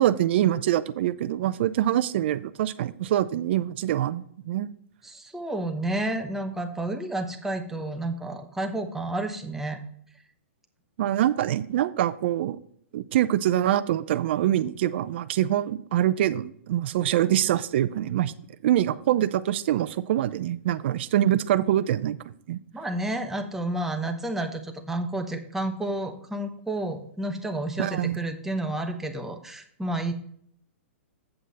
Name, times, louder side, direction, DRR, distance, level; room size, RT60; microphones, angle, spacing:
voice 1, 0.0-4.7 11.0-12.6 12.9-18.3 18.6-22.2 22.5-22.6 27.8-28.2, right 12 dB, 55° right, 12 dB, 0.4 m, -24 dB
voice 2, 5.0-9.8 22.7-30.1, right 1 dB, 5° right, 4 dB, 0.9 m, -30 dB
8.0 x 7.8 x 4.1 m, 0.64 s
hypercardioid pair, 140°, 7 cm